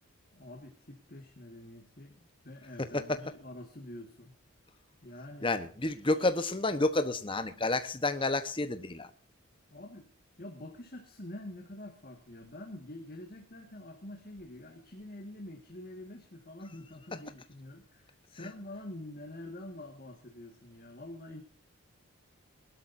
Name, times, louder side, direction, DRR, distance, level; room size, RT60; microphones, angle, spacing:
voice 1, 0.3-4.3 5.0-5.6 9.7-10.1 10.4-21.4, left 1 dB, 40° left, 1.8 m, -46 dB
voice 2, 5.4-9.1, left 2 dB, 25° left, 1.1 m, -30 dB
22.5 x 12.5 x 2.7 m
head